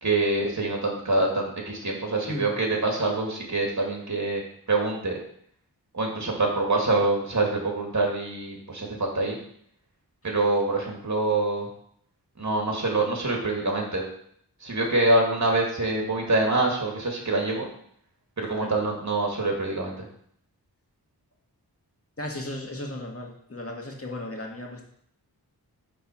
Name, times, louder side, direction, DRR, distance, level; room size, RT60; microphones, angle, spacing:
voice 1, 0.0-4.4 4.7-5.2 5.9-9.4 10.2-11.7 12.4-14.1 14.6-17.7 18.4-20.0, right 2 dB, 45° right, -1 dB, 2.5 m, -25 dB
voice 2, 18.5-19.0 22.2-24.8, left 1 dB, 35° left, 0 dB, 1.9 m, -36 dB
9.2 x 4.0 x 6.2 m, 0.67 s
wide cardioid pair, 85°, 39 cm